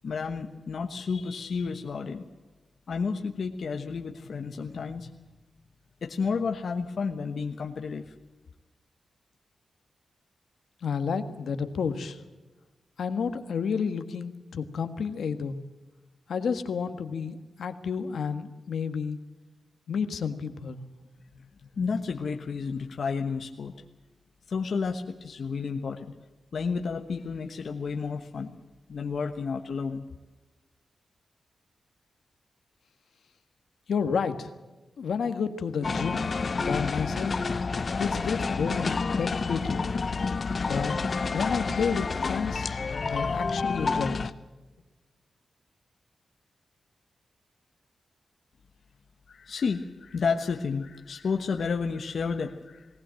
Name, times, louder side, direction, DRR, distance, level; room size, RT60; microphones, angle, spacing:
voice 1, 0.0-2.2 2.9-5.1 6.0-8.1 21.7-23.7 24.5-26.1 26.5-28.5 28.9-30.0 49.3-52.9, left 5 dB, 55° left, 3 dB, 1.2 m, -31 dB
voice 2, 10.8-12.2 13.0-15.6 16.3-19.2 19.9-20.8 33.9-34.5 35.0-36.3 36.6-37.5 38.0-39.9 40.6-40.9 41.3-42.7 43.1-44.2, left 6 dB, 80° left, 8 dB, 1.5 m, -30 dB
sound 1, 35.8-44.3, left 4 dB, 40° left, 0.7 m, -29 dB
20.0 x 18.5 x 7.6 m, 1.2 s
wide cardioid pair, 170°, 0 cm